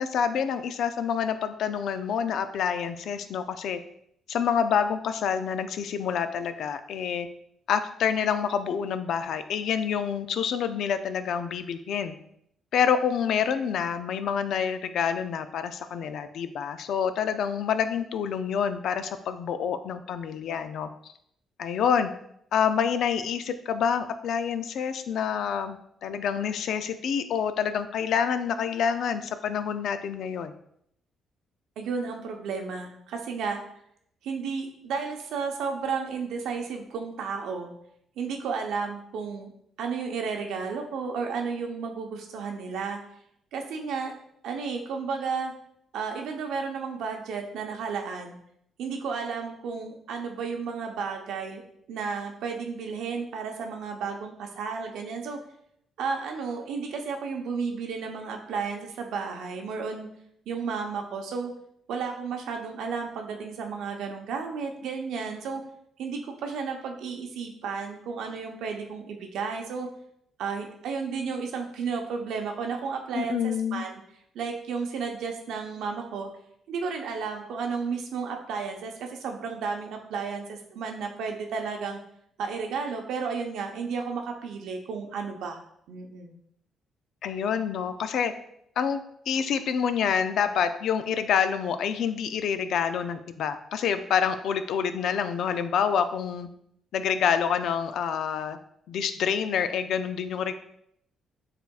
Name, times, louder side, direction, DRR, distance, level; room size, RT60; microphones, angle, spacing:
voice 1, 0.0-3.8 4.3-7.3 7.7-12.1 12.7-20.9 21.6-22.1 22.5-30.5 73.1-73.8 87.2-88.3 88.8-96.5 96.9-98.6 98.9-100.5, left 7 dB, 75° left, 10 dB, 0.4 m, -27 dB
voice 2, 31.8-33.6 34.2-37.7 38.2-39.5 39.8-43.0 43.5-44.1 44.4-45.5 45.9-48.4 48.8-51.6 51.9-55.4 56.0-60.1 60.5-61.5 61.9-65.6 66.0-69.9 70.4-73.4 73.7-74.0 74.3-76.3 76.7-82.0 82.4-85.6 85.9-86.4, right 5 dB, 80° right, 3 dB, 0.7 m, -33 dB
6.6 x 3.4 x 2.3 m, 0.71 s
cardioid pair, 90°, 0 cm